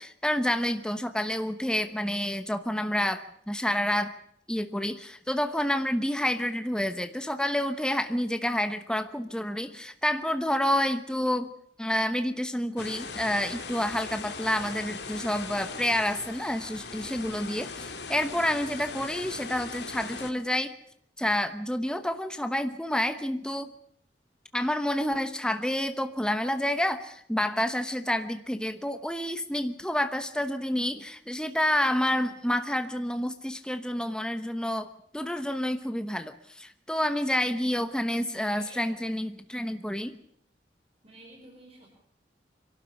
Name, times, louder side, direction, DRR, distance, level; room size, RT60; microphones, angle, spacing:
voice 1, 0.0-4.1 4.5-11.5 11.8-20.7 21.2-23.7 24.5-40.2, left 1 dB, 5° left, 8 dB, 1.0 m, -29 dB
sound 1, 12.8-20.3, left 4 dB, 70° left, 2.4 m, -39 dB
voice 2, 38.3-38.9 41.0-41.9, right 1 dB, 35° right, -1 dB, 5.3 m, -51 dB
27.0 x 12.5 x 9.8 m, 0.66 s
head